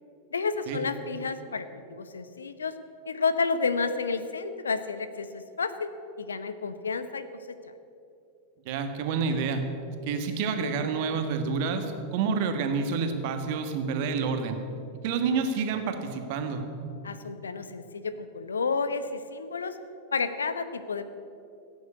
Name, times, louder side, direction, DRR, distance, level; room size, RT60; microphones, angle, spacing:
voice 1, 0.3-2.8 3.1-5.9 6.2-7.3 17.0-19.8 20.1-21.0, left 4 dB, 70° left, 12 dB, 0.9 m, -30 dB
voice 2, 8.6-9.6 10.1-14.6 15.0-16.6, right 5 dB, 50° right, 6 dB, 1.7 m, -28 dB
16.5 x 9.3 x 8.4 m, 2.6 s
figure-of-eight pair, 90°, 0 cm